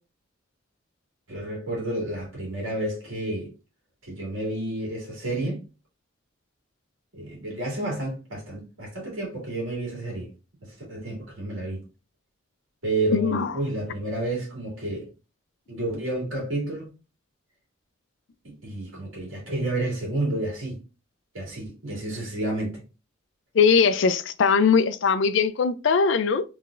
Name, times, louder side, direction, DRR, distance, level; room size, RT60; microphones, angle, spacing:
voice 1, 1.3-3.5 4.0-5.6 7.1-10.3 10.6-11.8 12.8-15.1 15.7-16.9 18.4-20.8 21.3-22.8, right 2 dB, 75° right, 2.1 m, -30 dB
voice 2, 13.1-13.5 23.5-26.4, left 5 dB, 60° left, 0.4 m, -20 dB
3.7 x 3.2 x 2.4 m
head